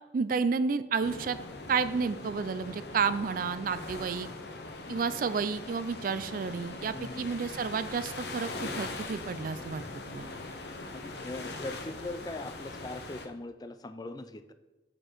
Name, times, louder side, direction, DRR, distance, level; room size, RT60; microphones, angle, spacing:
voice 1, 0.1-1.4 1.7-4.3 4.9-10.3, right 5 dB, 50° right, 13 dB, 0.3 m, -31 dB
sound 1, 1.0-13.3, left 2 dB, 65° left, 0.8 m, -41 dB
voice 2, 6.9-7.3 10.9-14.5, left 2 dB, 20° left, 10 dB, 0.4 m, -41 dB
8.7 x 4.5 x 5.0 m, 1.1 s
head